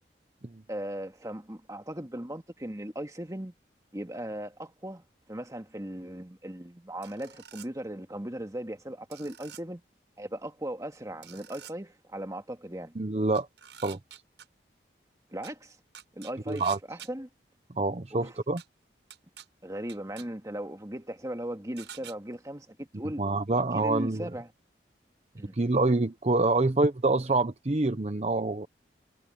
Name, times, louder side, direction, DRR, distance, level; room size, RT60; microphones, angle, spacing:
voice 1, 0.7-3.5 3.9-5.0 5.3-9.8 10.2-12.9 15.3-15.8 16.1-17.3 18.1-18.4 19.6-23.2 23.7-24.5 25.4-25.6, right 1 dB, 20° right, 1.9 m, -38 dB
sound 1, 7.0-7.7 9.1-9.6 11.2-11.7 13.3-14.5 15.4-15.5 15.9-17.1 18.6-18.7 19.1-19.5 19.9-20.3 21.8-22.1, right 10 dB, 85° right, 7.5 m, -47 dB
voice 2, 13.0-13.5 13.8-14.0 16.5-16.8 17.8-18.6 23.2-24.3 25.5-28.7, right 2 dB, 40° right, 0.8 m, -26 dB
head